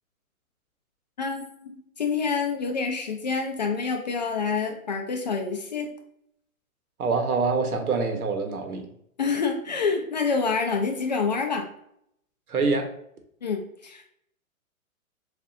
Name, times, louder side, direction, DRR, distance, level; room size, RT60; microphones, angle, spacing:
voice 1, 1.2-5.9 9.2-11.7 13.4-14.0, left 5 dB, 35° left, 2 dB, 0.4 m, -27 dB
voice 2, 7.0-8.9 12.5-12.9, right 4 dB, 85° right, 5 dB, 1.1 m, -25 dB
6.6 x 2.5 x 2.5 m, 0.73 s
hypercardioid pair, 145°, 43 cm